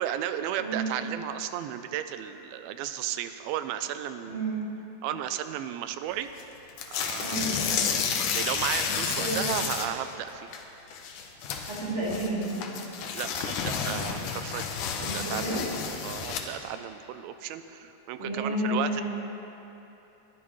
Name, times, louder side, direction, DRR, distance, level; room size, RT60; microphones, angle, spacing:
voice 1, 0.0-4.4 5.0-6.3 6.9-7.4 8.4-10.5 13.2-14.6 15.0-15.6 16.0-19.0, right 11 dB, 90° right, 10 dB, 2.4 m, -34 dB
voice 2, 4.3-4.6 7.2-7.7 9.2-9.3 11.7-12.8 15.0-15.6 18.2-19.0, right 1 dB, 35° right, -9 dB, 3.6 m, -31 dB
sound 1, 6.4-6.5 6.7-10.0 10.3-10.6 10.9-16.6, left 6 dB, 70° left, 2.2 m, -31 dB
22.0 x 12.5 x 3.1 m, 3.0 s
omnidirectional pair, 4.2 m